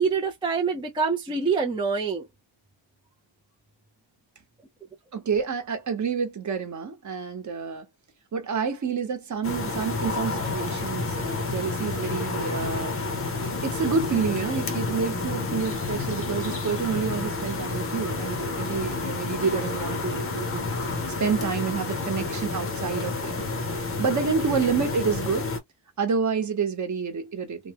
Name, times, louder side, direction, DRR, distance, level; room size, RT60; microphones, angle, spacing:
voice 1, 0.0-2.2, right 5 dB, 10° right, 0.4 m, -25 dB
voice 2, 5.1-7.8 8.3-13.0 13.6-20.6 21.2-23.4 24.0-25.5 26.0-27.7, right 6 dB, 35° right, 1.0 m, -28 dB
sound 1, 9.4-25.6, left 3 dB, 30° left, 0.7 m, -30 dB
3.1 x 2.2 x 2.8 m
wide cardioid pair, 170°, 48 cm